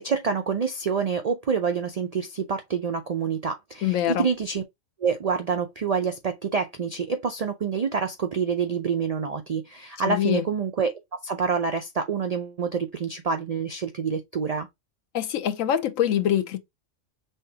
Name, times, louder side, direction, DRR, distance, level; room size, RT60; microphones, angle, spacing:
voice 1, 0.0-4.6 5.0-14.7, right 6 dB, 85° right, 0.3 m, -27 dB
voice 2, 3.8-4.3 10.1-10.4 15.1-16.6, left 10 dB, 90° left, 1.0 m, -24 dB
5.5 x 3.5 x 2.7 m
omnidirectional pair, 1.3 m